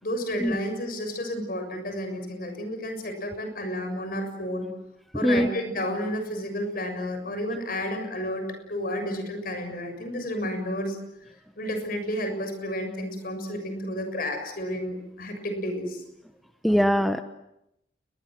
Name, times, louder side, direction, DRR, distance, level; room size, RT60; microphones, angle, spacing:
voice 1, 0.0-4.7 5.1-11.0 11.6-16.0, equal, 55° left, 7 dB, 6.9 m, -31 dB
voice 2, 16.6-17.2, equal, ahead, 8 dB, 0.9 m, -21 dB
29.5 x 22.5 x 7.7 m, 0.83 s
head